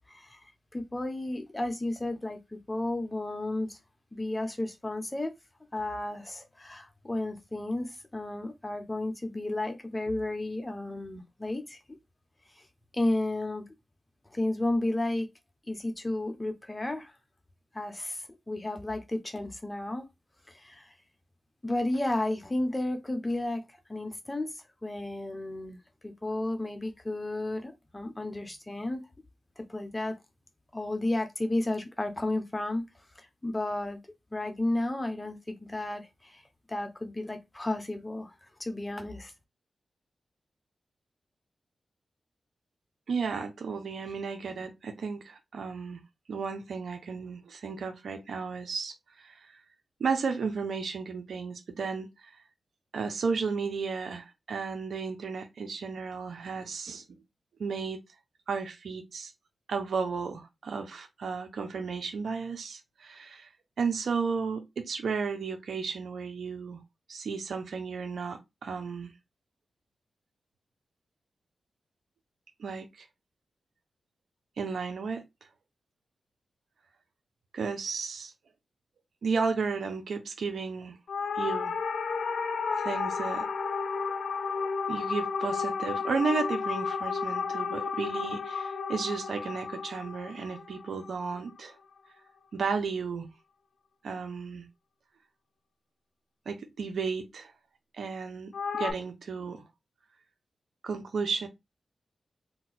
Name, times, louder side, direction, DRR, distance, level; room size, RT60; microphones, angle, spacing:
voice 1, 0.1-0.4 0.7-3.8 4.1-5.3 5.7-11.8 12.9-13.6 14.3-15.3 15.7-17.1 17.7-20.1 20.5-20.9 21.6-23.6 23.9-25.8 26.0-29.0 29.6-30.2 30.7-32.9 33.2-34.0 34.3-36.4 36.7-38.3 38.6-39.3, left 1 dB, 25° left, 0.9 m, -32 dB
voice 2, 43.1-46.0 46.3-48.9 49.2-49.3 50.0-52.3 52.9-57.0 57.6-58.0 58.5-59.3 59.7-63.5 63.8-66.8 67.1-69.1 72.6-72.9 74.6-75.2 77.5-78.3 79.2-81.0 81.4-81.7 82.8-83.5 84.9-91.7 92.5-93.3 94.0-94.7 96.5-97.5 97.9-99.6 100.8-101.5, right 5 dB, 80° right, 0.6 m, -33 dB
sound 1, 81.1-91.6 98.5-98.9, left 5 dB, 85° left, 0.4 m, -32 dB
2.8 x 2.2 x 4.0 m
cardioid pair, 45°, 0 cm